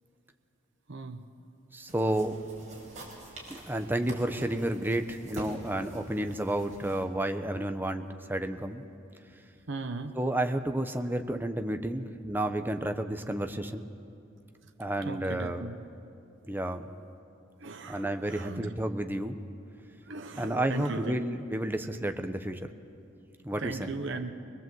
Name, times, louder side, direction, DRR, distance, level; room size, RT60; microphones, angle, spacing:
voice 1, 0.9-1.2 9.7-10.2 15.0-15.7 17.6-18.7 20.1-21.1 23.6-24.3, right 3 dB, 65° right, 6 dB, 1.0 m, -37 dB
voice 2, 1.7-2.4 3.5-8.8 10.1-13.9 14.8-15.7 16.4-16.9 17.9-19.4 20.3-22.6 23.4-23.9, right 1 dB, 10° right, 6 dB, 0.9 m, -31 dB
sound 1, 1.9-7.0, right 1 dB, 40° right, 4.8 m, -46 dB
21.5 x 21.5 x 7.8 m, 2.5 s
head